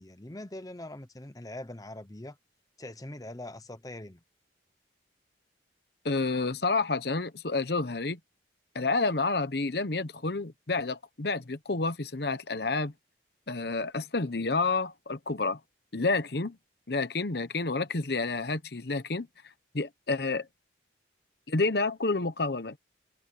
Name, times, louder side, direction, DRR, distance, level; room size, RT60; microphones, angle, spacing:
voice 1, 0.0-2.4 2.8-4.2, left 1 dB, 20° left, 0.9 m, -42 dB
voice 2, 6.0-8.2 8.7-12.9 13.5-15.6 15.9-16.6 16.9-19.3 19.7-20.5 21.5-22.8, left 3 dB, 55° left, 1.0 m, -29 dB
head